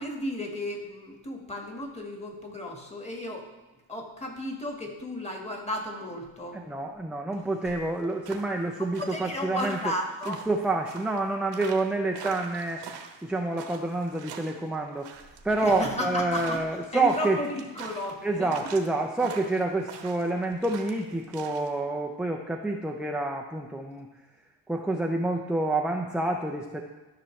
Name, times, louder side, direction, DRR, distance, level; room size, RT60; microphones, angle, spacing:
voice 1, 0.0-3.5 3.9-6.6 8.8-10.5 15.6-16.6 16.9-18.5, left 1 dB, 15° left, 1 dB, 1.6 m, -34 dB
voice 2, 6.5-9.8 10.3-12.8 13.2-17.4 18.2-24.1 24.7-26.8, right 2 dB, ahead, 1 dB, 0.5 m, -28 dB
sound 1, 7.6-21.7, right 6 dB, 60° right, 1.1 m, -44 dB
13.0 x 5.9 x 3.2 m, 1.1 s
cardioid pair, 110°, 48 cm